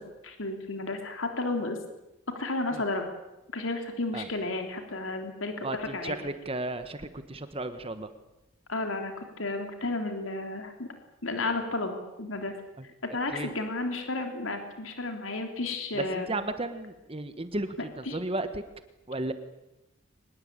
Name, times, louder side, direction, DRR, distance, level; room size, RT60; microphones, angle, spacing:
voice 1, 0.2-1.8 2.4-3.0 3.5-6.2 8.7-10.9 11.2-12.5 13.1-16.3 18.1-18.2, left 2 dB, 75° left, 5 dB, 3.5 m, -32 dB
voice 2, 5.6-8.1 12.8-12.9 13.3-13.5 15.9-18.6 19.1-19.3, right 2 dB, 30° right, 10 dB, 1.3 m, -34 dB
24.0 x 21.0 x 8.9 m, 0.94 s
head